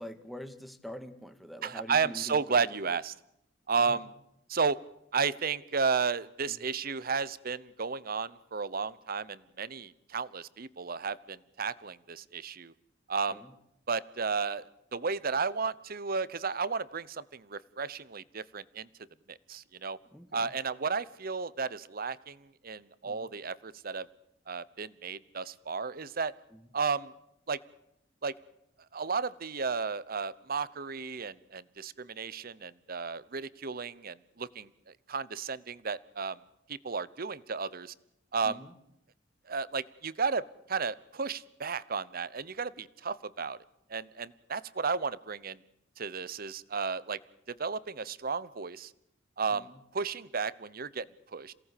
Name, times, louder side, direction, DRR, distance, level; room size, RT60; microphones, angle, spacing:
voice 1, 0.0-2.4 3.8-4.0 13.3-13.5 20.1-20.5 23.0-23.3 26.5-26.6 38.4-38.7 49.5-49.8, equal, ahead, 9 dB, 1.9 m, -45 dB
voice 2, 1.6-3.1 3.7-4.1 4.5-4.8 5.1-12.7 13.1-13.4 13.9-18.9 19.3-20.0 20.3-24.1 24.5-26.3 26.7-27.1 27.5-27.6 28.2-28.3 28.9-36.4 36.7-37.9 38.3-38.6 39.5-43.6 43.9-45.6 46.0-47.2 47.5-48.9 49.4-51.1 51.3-51.5, right 5 dB, 50° right, 18 dB, 0.9 m, -33 dB
28.0 x 18.0 x 8.5 m, 0.79 s
head